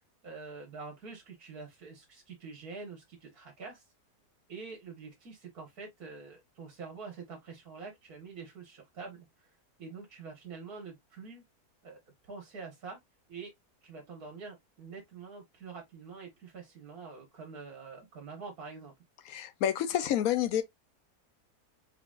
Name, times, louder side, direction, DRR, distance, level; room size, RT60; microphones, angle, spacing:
voice 1, 0.2-3.8 4.5-9.3 9.8-11.4 11.8-13.0 13.3-13.5 13.8-18.9, right 4 dB, 65° right, 2.0 m, -46 dB
voice 2, 19.2-20.6, left 10 dB, 65° left, 1.1 m, -29 dB
4.6 x 4.0 x 2.4 m
omnidirectional pair, 1.7 m